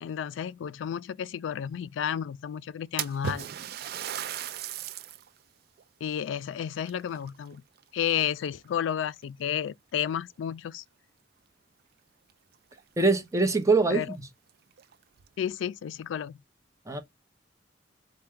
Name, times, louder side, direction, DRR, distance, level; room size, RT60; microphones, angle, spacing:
voice 1, 0.0-3.5 6.0-7.6 7.9-10.8 13.9-14.2 15.4-16.4, left 9 dB, 85° left, 0.3 m, -32 dB
Splash splatter, 3.0-5.3 5.8-5.9 6.8-7.8 8.2-8.6 9.4-9.5 10.0-10.1 12.3-12.4 12.7-12.8 13.4-13.5 13.9-14.0 14.7-15.3, right 9 dB, 55° right, 0.4 m, -36 dB
voice 2, 13.0-14.0 16.9-17.0, right 3 dB, 15° right, 0.7 m, -23 dB
4.3 x 2.1 x 3.5 m
head